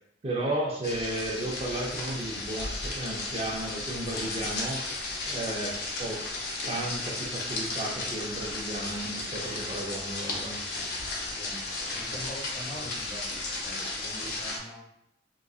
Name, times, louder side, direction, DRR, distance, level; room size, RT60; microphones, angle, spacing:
voice 1, 0.2-4.8 5.3-6.2 6.7-10.6, right 1 dB, 35° right, -2 dB, 0.5 m, -34 dB
binaural rain in garden, 0.8-14.6, left 2 dB, 60° left, 0.7 m, -34 dB
voice 2, 11.3-14.8, equal, 25° left, -4 dB, 0.9 m, -44 dB
3.7 x 2.5 x 2.3 m, 0.77 s
head